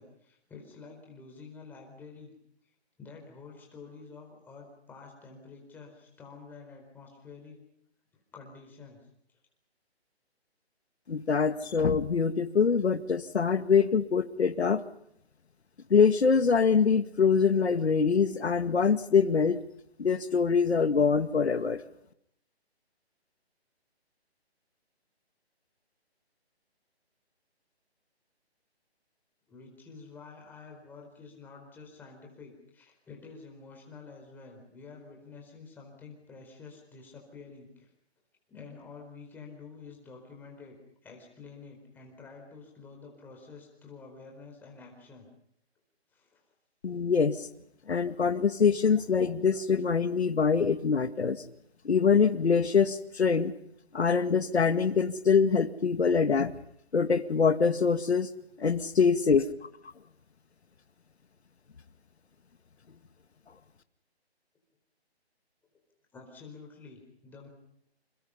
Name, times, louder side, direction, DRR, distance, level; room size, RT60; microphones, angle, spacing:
voice 1, 0.0-2.3 3.0-7.6 8.1-9.0 29.5-37.9 38.5-40.8 41.0-45.3 46.1-46.4 66.1-67.5, left 4 dB, 5° left, 1 dB, 4.3 m, -49 dB
voice 2, 11.1-14.8 15.9-19.6 20.0-21.8 46.8-47.5 47.9-51.4 51.8-53.5 53.9-56.5 56.9-58.3 58.6-59.5, left 5 dB, 75° left, 9 dB, 2.0 m, -24 dB
29.0 x 28.0 x 5.7 m, 0.72 s
hypercardioid pair, 165°, 33 cm